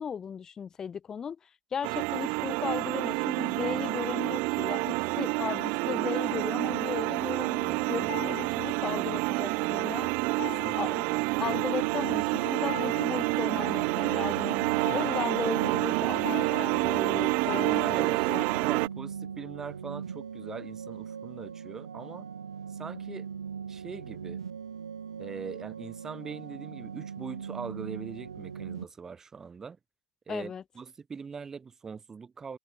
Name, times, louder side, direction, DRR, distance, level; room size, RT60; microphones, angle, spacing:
voice 1, 0.0-10.1 10.7-18.4 30.3-30.6, left 7 dB, 20° left, 4.5 m, -36 dB
sound 1, 1.8-18.9, right 28 dB, 45° right, 0.7 m, -28 dB
sound 2, 7.7-18.5, left 40 dB or more, 50° left, 5.2 m, -45 dB
voice 2, 10.6-11.0 17.8-18.2 18.6-22.3 22.7-23.3 23.7-24.4 25.2-29.8 30.3-32.6, right 5 dB, 15° right, 7.4 m, -42 dB
sound 3, 11.4-28.8, right 7 dB, 85° right, 5.2 m, -40 dB
hypercardioid pair, 105°, 3 cm